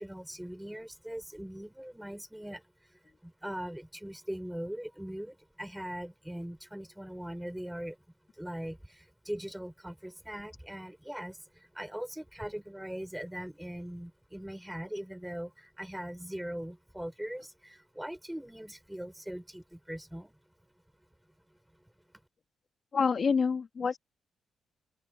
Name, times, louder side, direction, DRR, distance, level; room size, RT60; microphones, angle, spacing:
voice 1, 0.0-2.6 2.9-8.0 8.4-20.4, equal, 5° right, 7.5 m, -41 dB
voice 2, 22.9-24.0, left 5 dB, 50° left, 2.6 m, -27 dB
open air
cardioid pair, 70°, 0 cm